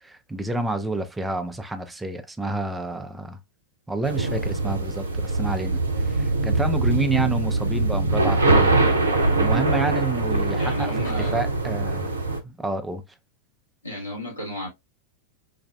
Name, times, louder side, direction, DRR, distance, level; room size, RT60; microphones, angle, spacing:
voice 1, 0.0-3.4 3.9-8.8 9.1-12.1 12.4-13.0, right 2 dB, 10° right, 0.5 m, -29 dB
sound 1, 4.0-12.4, right 2 dB, 75° right, 0.5 m, -23 dB
voice 2, 10.6-11.5 13.8-14.7, left 1 dB, 80° left, 1.5 m, -33 dB
4.0 x 2.4 x 2.2 m
figure-of-eight pair, 90°, 0 cm